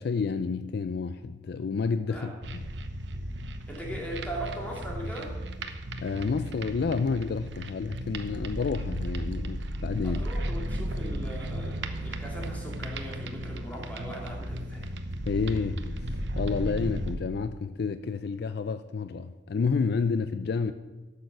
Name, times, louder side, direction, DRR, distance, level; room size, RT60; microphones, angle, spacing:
voice 1, 0.0-2.6 6.0-10.2 15.2-20.7, left 5 dB, 65° left, 0.4 m, -30 dB
sound 1, 2.4-17.1, right 1 dB, 90° right, 0.9 m, -35 dB
voice 2, 3.7-5.3 8.4-8.5 10.0-14.9, right 1 dB, 10° left, 2.7 m, -39 dB
12.5 x 6.7 x 6.1 m
head